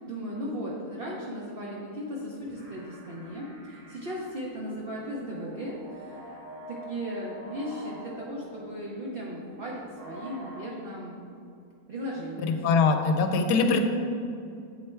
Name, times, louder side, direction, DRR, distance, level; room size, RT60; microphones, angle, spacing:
voice 1, 0.1-6.4 6.7-11.2 11.9-12.7, equal, 50° right, -4 dB, 0.7 m, -36 dB
sound 1, 2.4-10.6, right 1 dB, 75° right, 2.0 m, -46 dB
voice 2, 12.6-13.8, left 4 dB, 85° left, 6 dB, 1.1 m, -22 dB
8.2 x 3.2 x 4.4 m, 2.4 s
omnidirectional pair, 1.7 m